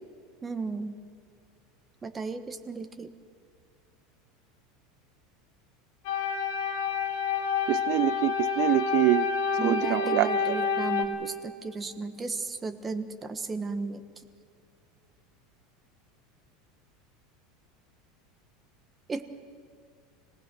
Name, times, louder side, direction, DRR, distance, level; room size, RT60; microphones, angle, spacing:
voice 1, 0.4-0.9 2.0-3.1 9.6-14.0 19.1-19.3, right 4 dB, 15° right, 9 dB, 1.3 m, -34 dB
sound 1, 6.0-11.0, left 5 dB, 65° left, 2.3 m, -28 dB
voice 2, 7.7-9.3 9.6-10.6, right 17 dB, 55° right, 15 dB, 0.5 m, -25 dB
26.0 x 19.0 x 6.1 m, 2.4 s
supercardioid pair, 140°, 0 cm